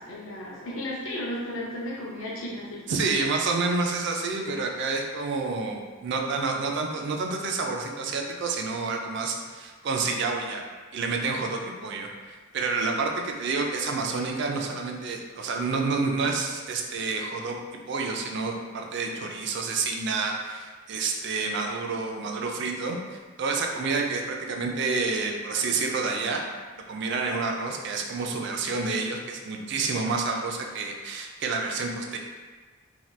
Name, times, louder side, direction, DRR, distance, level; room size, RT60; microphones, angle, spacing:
voice 1, 0.0-2.8, left 1 dB, 70° left, -4 dB, 0.5 m, -34 dB
voice 2, 2.9-10.6 10.9-17.6 17.9-26.4 26.9-32.2, right 4 dB, 55° right, 2 dB, 0.4 m, -29 dB
2.8 x 2.2 x 3.1 m, 1.4 s
head